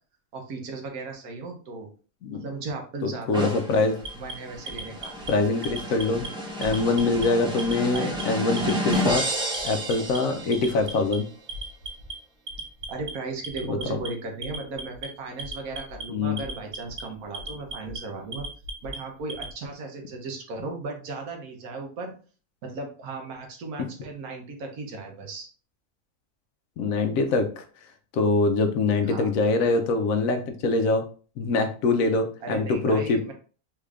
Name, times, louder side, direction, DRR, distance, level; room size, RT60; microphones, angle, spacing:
voice 1, 0.3-1.9 2.3-3.6 4.2-5.1 7.9-8.1 12.9-18.5 18.8-22.1 22.6-25.5 29.1-29.3 32.4-33.3, right 3 dB, 80° right, 2 dB, 1.3 m, -36 dB
voice 2, 3.0-3.9 5.3-6.3 6.6-9.3 9.6-11.3 13.7-14.0 16.1-16.4 26.8-27.6 28.1-31.0 31.4-33.3, left 3 dB, 70° left, 6 dB, 1.0 m, -24 dB
sound 1, 3.3-10.9, equal, 5° right, 0.3 m, -31 dB
Alarm, 4.0-5.3 5.6-6.3 6.6-7.3 7.6-8.2 8.6-9.2 9.5-10.2 10.5-11.2 11.5-12.1 12.5-13.1 13.4-14.1 14.4-15.1 15.4-16.0 16.4-17.0 17.3-18.0 18.3-19.5, right 2 dB, 55° right, 0.8 m, -36 dB
3.6 x 2.4 x 3.2 m, 0.39 s
omnidirectional pair, 1.5 m